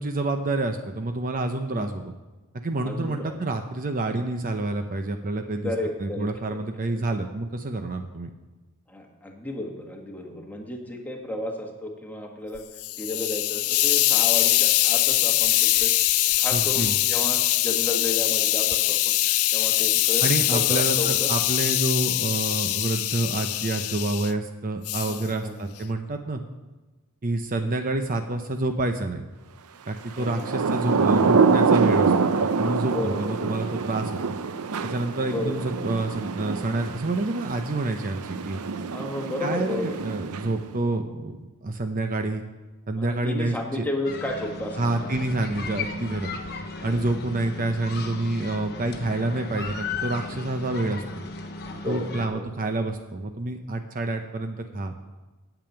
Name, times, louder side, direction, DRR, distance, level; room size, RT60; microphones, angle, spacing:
voice 1, 0.0-2.1 2.5-5.7 6.0-8.3 16.5-16.9 20.2-26.4 27.2-29.2 29.9-34.3 34.8-38.6 39.4-42.4 42.9-43.9 44.8-46.3 46.8-51.0 51.8-54.9, right 2 dB, 40° right, 6 dB, 0.7 m, -28 dB
voice 2, 2.8-3.4 5.6-6.6 8.9-12.6 13.0-15.9 16.4-19.1 19.5-21.3 25.1-25.5 27.5-27.7 30.2-30.6 32.9-33.6 35.3-35.9 38.9-40.0 43.0-45.0 46.8-47.0 51.7-52.7, left 1 dB, 10° left, 1 dB, 1.5 m, -33 dB
Hiss, 12.6-24.3 24.9-25.2, left 16 dB, 65° left, 0.4 m, -23 dB
Thunder / Rain, 30.2-40.8, right 4 dB, 75° right, 0.6 m, -25 dB
sound 1, 44.0-52.3, left 4 dB, 50° left, 1.1 m, -36 dB
9.0 x 7.0 x 8.9 m, 1.2 s
head